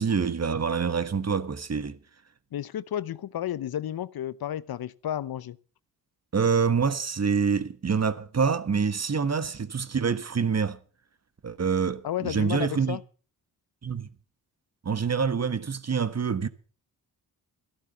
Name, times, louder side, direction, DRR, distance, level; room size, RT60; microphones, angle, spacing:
voice 1, 0.0-2.0 6.3-10.8 11.4-13.0 13.8-14.1 14.8-16.5, right 6 dB, 40° right, 1.4 m, -26 dB
voice 2, 2.5-5.6 12.0-13.0, left 11 dB, 60° left, 0.8 m, -32 dB
14.0 x 12.0 x 5.7 m
supercardioid pair, 45°, 42 cm